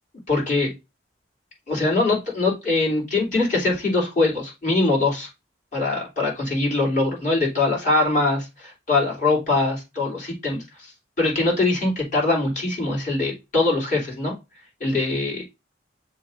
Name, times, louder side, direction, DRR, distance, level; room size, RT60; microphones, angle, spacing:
voice 1, 0.3-0.7 1.7-5.3 5.7-10.6 11.2-14.3 14.8-15.4, left 2 dB, 45° left, -3 dB, 3.2 m, -22 dB
6.7 x 2.8 x 5.1 m, 0.24 s
head